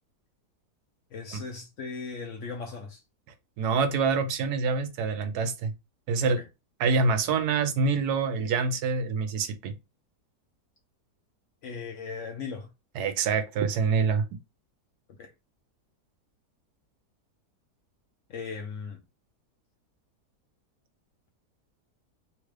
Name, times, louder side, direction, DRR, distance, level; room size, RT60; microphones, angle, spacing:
voice 1, 1.1-3.0 6.2-6.3 11.6-12.7 15.2-15.3 18.3-19.0, left 5 dB, 65° left, 0.8 m, -38 dB
voice 2, 3.6-5.7 6.1-6.4 6.8-9.7 12.9-14.2, right 4 dB, 80° right, 1.1 m, -26 dB
3.1 x 2.4 x 3.2 m
omnidirectional pair, 1.7 m